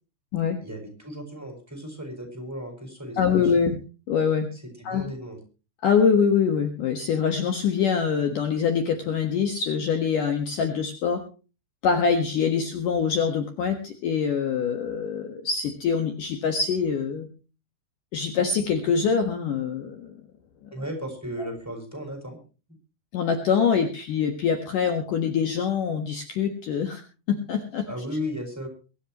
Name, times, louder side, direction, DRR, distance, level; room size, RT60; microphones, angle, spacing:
voice 1, 0.6-3.5 4.5-5.4 20.7-22.4 27.9-28.7, equal, 5° right, 4 dB, 5.3 m, -35 dB
voice 2, 3.2-3.8 4.1-4.5 4.8-5.0 5.8-11.2 11.8-17.3 18.1-20.2 23.1-27.0 27.3-27.9, left 6 dB, 60° left, 5 dB, 2.8 m, -24 dB
23.0 x 13.0 x 3.0 m, 0.34 s
omnidirectional pair, 4.7 m